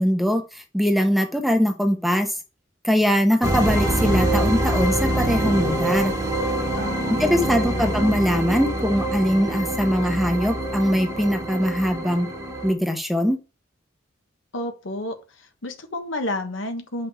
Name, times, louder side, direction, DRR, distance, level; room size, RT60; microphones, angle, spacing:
voice 1, 0.0-2.3 2.8-6.1 7.2-12.3 12.6-13.4, equal, ahead, 0.9 m, -22 dB
sound 1, 3.4-12.7, right 1 dB, 20° right, 1.3 m, -25 dB
voice 2, 6.8-7.9 14.5-15.2 15.6-17.1, left 1 dB, 85° left, 1.4 m, -31 dB
8.4 x 5.5 x 4.9 m
head